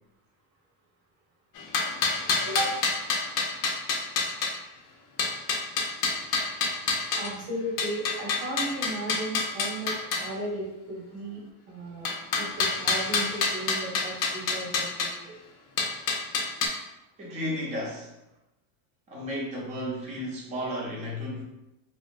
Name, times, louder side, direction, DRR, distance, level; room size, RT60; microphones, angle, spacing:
sound 1, 1.6-4.5 5.2-7.3 7.8-10.3 12.1-15.1 15.8-16.7, left 4 dB, 50° left, 0.5 m, -27 dB
voice 1, 2.5-2.8 7.1-12.1 12.3-15.4, right 1 dB, 85° right, -2 dB, 1.1 m, -35 dB
voice 2, 6.5-7.0 17.2-18.2 19.1-21.4, equal, 15° right, -4 dB, 0.5 m, -34 dB
2.8 x 2.1 x 2.4 m, 0.93 s
cardioid pair, 140°, 44 cm